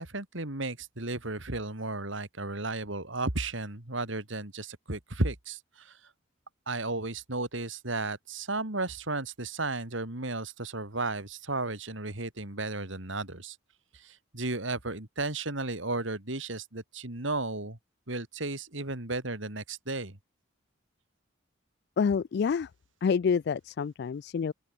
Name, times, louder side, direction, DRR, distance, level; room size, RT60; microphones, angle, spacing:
voice 1, 0.0-6.0 6.7-13.6 13.9-17.8 18.1-20.2, right 2 dB, 65° right, 3.2 m, -34 dB
voice 2, 22.0-22.7 23.0-24.5, left 6 dB, 50° left, 0.3 m, -27 dB
open air
head